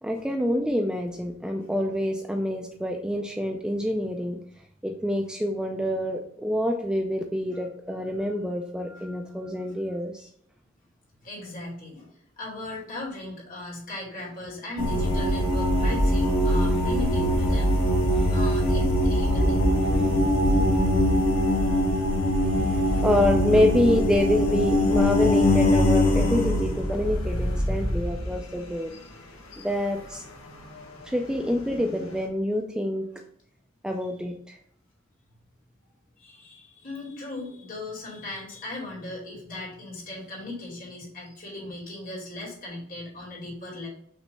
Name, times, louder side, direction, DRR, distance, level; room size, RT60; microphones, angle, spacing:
voice 1, 0.0-4.4 4.8-10.3 16.5-16.6 18.1-18.4 19.7-20.8 22.4-28.9 29.6-30.2 31.1-33.1 33.8-34.6, left 1 dB, 5° right, 2 dB, 0.4 m, -27 dB
voice 2, 11.2-12.1 12.4-19.7 22.8-22.9 28.9-29.1 29.5-29.7 30.5-30.6 31.2-31.3 36.2-43.9, left 2 dB, 40° left, -4 dB, 2.5 m, -38 dB
sound 1, 14.8-28.6 30.5-30.6 31.1-31.5 31.8-32.2, left 1 dB, 75° left, 1.4 m, -22 dB
6.0 x 3.2 x 5.4 m, 0.68 s
head